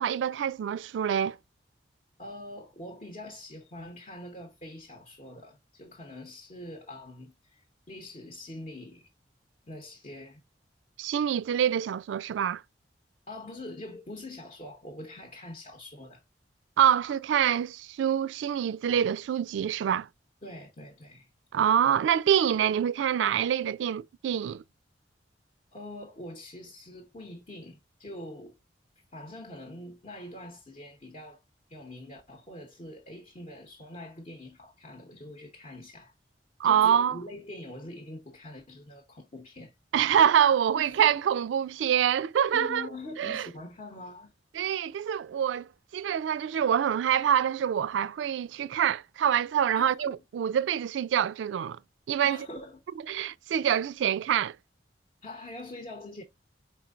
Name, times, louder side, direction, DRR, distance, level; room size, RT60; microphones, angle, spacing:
voice 1, 0.0-1.4 11.0-12.6 16.8-20.1 21.5-24.6 36.6-37.2 39.9-42.9 43.2-43.5 44.5-45.7 45.9-51.8 52.1-52.4 53.1-54.5, right 9 dB, 90° right, 0.3 m, -25 dB
voice 2, 2.2-9.1 9.7-10.4 13.3-16.2 20.4-21.3 25.7-28.6 29.1-31.4 31.7-36.1 36.6-39.7 40.7-41.2 42.5-44.3 49.7-50.2 52.2-52.8 53.7-53.8 55.2-56.2, left 1 dB, 40° left, 0.8 m, -44 dB
4.4 x 4.3 x 2.4 m
head